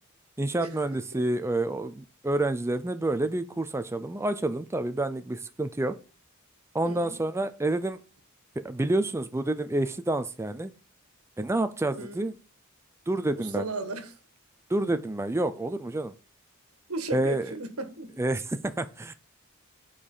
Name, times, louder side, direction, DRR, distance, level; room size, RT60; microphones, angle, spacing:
voice 1, 0.4-5.9 6.7-8.0 8.6-10.7 11.4-12.3 13.1-13.7 14.7-16.1 17.1-17.5 18.2-19.1, right 2 dB, 10° right, 0.4 m, -28 dB
voice 2, 6.8-7.2 11.9-12.3 13.4-14.1 16.9-18.1, right 3 dB, 85° right, 1.5 m, -35 dB
8.6 x 5.0 x 5.5 m
head